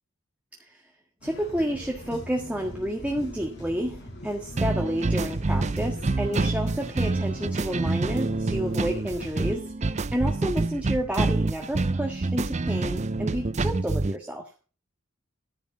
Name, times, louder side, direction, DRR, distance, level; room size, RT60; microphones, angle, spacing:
sound 1, 1.2-9.6, equal, 55° left, 4.5 m, -43 dB
voice 1, 1.2-14.5, equal, 5° right, 1 dB, 1.6 m, -30 dB
sound 2, 4.6-14.1, right 3 dB, 35° right, 0.5 m, -27 dB
14.0 x 5.3 x 7.1 m, 0.35 s
head